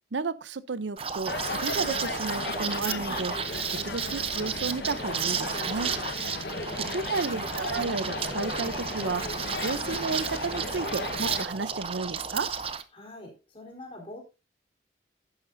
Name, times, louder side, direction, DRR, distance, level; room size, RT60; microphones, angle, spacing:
voice 1, 0.1-3.4 3.7-5.9 6.9-9.2 9.6-12.5, right 4 dB, 80° right, 0.6 m, -32 dB
Liquid, 1.0-12.8, right 6 dB, 30° right, 0.7 m, -33 dB
sound 1, 1.2-11.4, left 3 dB, 60° left, 1.2 m, -35 dB
voice 2, 6.3-7.2 12.9-14.2, left 1 dB, 30° left, 3.9 m, -46 dB
11.5 x 9.8 x 2.7 m
head